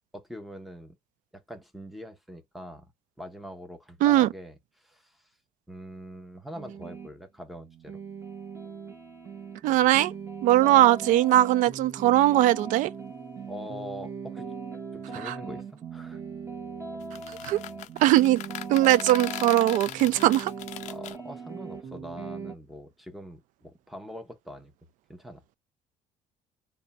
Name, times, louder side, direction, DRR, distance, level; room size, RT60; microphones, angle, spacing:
voice 1, 0.1-1.0 1.3-2.9 3.2-5.3 5.7-8.0 13.5-14.5 14.9-15.6 15.9-16.2 20.9-24.7 25.1-25.4, equal, ahead, 0.8 m, -43 dB
voice 2, 4.0-4.3 9.6-10.1 10.4-12.9 15.2-15.3 17.4-17.6 18.0-18.4 18.7-20.5, right 14 dB, 65° right, 0.4 m, -20 dB
sound 1, 6.5-7.1 7.6-22.5, right 5 dB, 15° right, 1.3 m, -39 dB
sound 2, 17.0-21.2, left 13 dB, 55° left, 0.4 m, -39 dB
3.4 x 2.3 x 4.1 m
cardioid pair, 165°, 14 cm